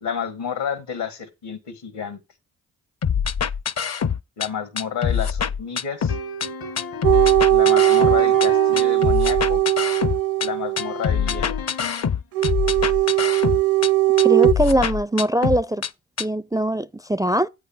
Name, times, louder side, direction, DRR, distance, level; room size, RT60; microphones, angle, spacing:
voice 1, 0.0-2.2 4.4-6.1 7.5-9.6 10.4-11.6, left 7 dB, 75° left, 1.7 m, -30 dB
sound 1, 3.0-4.5 4.8-6.5 6.8-8.5 8.8-10.5 10.8-13.9 14.2-15.9 16.2-16.3, left 7 dB, 40° left, 0.6 m, -24 dB
sound 2, 6.1-9.1 10.8-12.2, left 4 dB, 60° left, 1.1 m, -34 dB
sound 3, 7.0-11.0 12.4-14.5, right 14 dB, 60° right, 0.6 m, -18 dB
voice 2, 14.2-15.8 16.2-17.5, right 1 dB, 10° right, 0.4 m, -21 dB
8.6 x 3.8 x 5.6 m
supercardioid pair, 45°, 41 cm